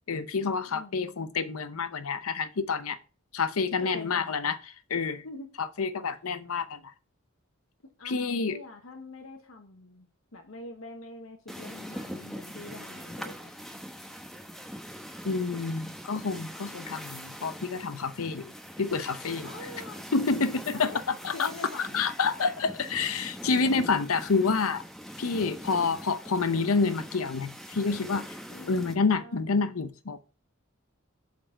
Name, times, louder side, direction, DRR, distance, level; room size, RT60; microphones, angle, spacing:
voice 1, 0.1-3.0 3.3-4.6 4.9-5.2 5.6-6.9 8.0-8.6 15.2-18.5 18.8-19.5 20.1-20.5 20.8-21.5 21.8-24.8 25.2-28.4 28.7-30.2, left 4 dB, 85° left, 0.7 m, -28 dB
voice 2, 0.7-1.2 3.8-4.4 5.2-5.5 7.8-13.5 19.4-21.0 21.3-22.0 28.5-29.4, left 2 dB, 70° left, 1.1 m, -45 dB
sound 1, 11.5-28.9, equal, ahead, 1.1 m, -42 dB
7.8 x 4.1 x 6.4 m
head